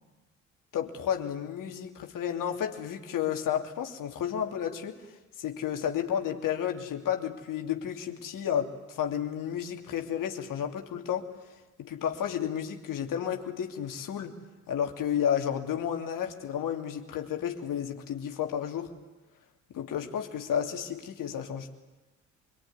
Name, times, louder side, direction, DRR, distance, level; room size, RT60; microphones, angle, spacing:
voice 1, 0.7-5.0 5.4-11.3 11.8-14.3 14.7-18.9 19.7-21.7, left 9 dB, 60° left, 4 dB, 3.0 m, -32 dB
25.5 x 23.5 x 9.7 m, 1.1 s
hypercardioid pair, 50°, 37 cm